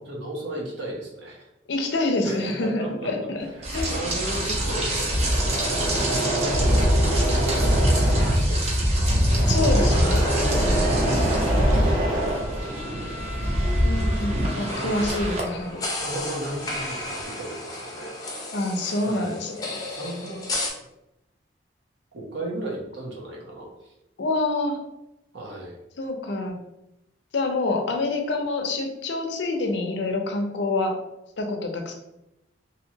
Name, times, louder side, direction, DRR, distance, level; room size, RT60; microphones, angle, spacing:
voice 1, 0.0-1.5 2.2-3.3 3.5-8.0 8.2-8.7 10.2-13.4 14.7-14.9 16.0-18.4 19.0-19.4 19.9-20.4 22.1-23.7 25.3-25.7, right 1 dB, 70° right, -2 dB, 0.8 m, -35 dB
voice 2, 1.7-3.9 9.5-10.2 13.8-15.8 18.5-19.8 24.2-24.8 26.0-26.6 27.3-31.0 31.4-31.9, left 2 dB, 65° left, 4 dB, 0.5 m, -27 dB
Engine / Mechanisms, 3.5-13.1 13.4-15.8 16.0-16.8, right 1 dB, 85° right, 1.2 m, -29 dB
Rain, 3.6-15.4, equal, 35° right, 0.5 m, -23 dB
sound 1, 14.7-20.7, left 2 dB, 20° left, 0.5 m, -33 dB
2.8 x 2.8 x 2.7 m, 0.88 s
head